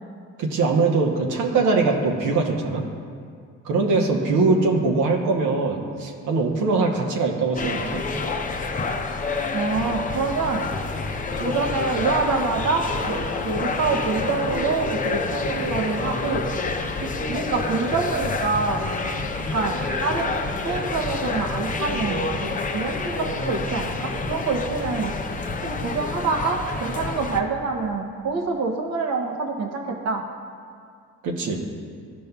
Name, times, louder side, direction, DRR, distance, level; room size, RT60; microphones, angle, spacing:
voice 1, 0.4-2.8 3.6-8.0 31.2-31.6, right 3 dB, 85° right, 1 dB, 0.9 m, -22 dB
sound 1, 7.6-27.4, left 3 dB, 25° left, 0.6 m, -28 dB
voice 2, 9.5-10.6 11.4-16.5 17.0-18.9 19.4-20.3 20.6-25.1 25.6-30.2, right 4 dB, 60° right, 2 dB, 0.8 m, -26 dB
14.0 x 5.2 x 2.3 m, 2.2 s
cardioid pair, 90°, 30 cm